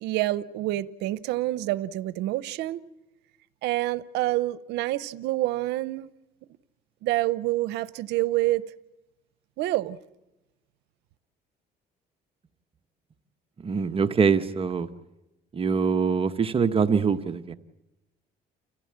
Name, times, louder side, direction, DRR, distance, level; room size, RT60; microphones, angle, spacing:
voice 1, 0.0-2.8 3.6-6.1 7.0-8.6 9.6-10.0, right 17 dB, 90° right, 0.7 m, -27 dB
voice 2, 13.6-14.9 15.5-17.5, right 5 dB, 35° right, 1.0 m, -24 dB
29.5 x 15.0 x 8.7 m
cardioid pair, 110°, 17 cm